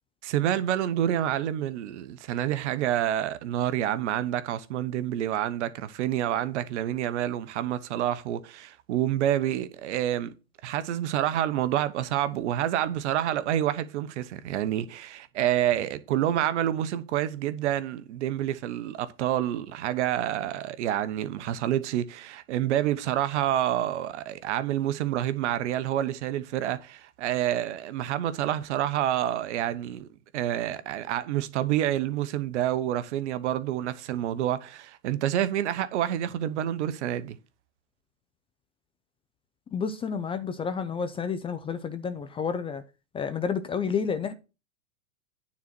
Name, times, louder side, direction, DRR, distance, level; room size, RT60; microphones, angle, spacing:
voice 1, 0.2-10.3 10.6-30.1 30.3-37.4, right 11 dB, 60° right, 1.1 m, -28 dB
voice 2, 39.7-42.8 43.1-44.3, left 6 dB, 15° left, 0.5 m, -30 dB
9.4 x 4.2 x 6.1 m
hypercardioid pair, 115°, 40 cm